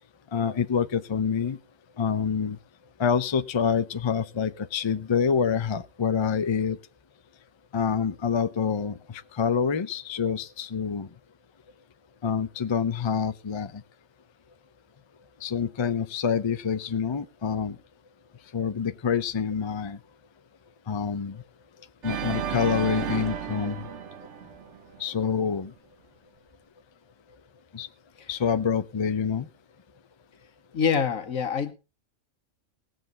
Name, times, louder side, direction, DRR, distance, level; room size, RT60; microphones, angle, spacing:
voice 1, 0.3-1.6 2.0-2.6 3.0-6.8 7.7-11.1 12.2-13.8 15.4-17.8 18.5-20.0 20.9-21.4 22.0-23.9 25.0-25.7 27.7-27.9 28.3-29.5, left 6 dB, 40° left, 0.4 m, -27 dB
Organ, 22.0-25.1, right 8 dB, 65° right, 1.1 m, -33 dB
voice 2, 30.7-31.7, left 6 dB, 85° left, 1.7 m, -25 dB
19.0 x 8.0 x 3.9 m
omnidirectional pair, 1.4 m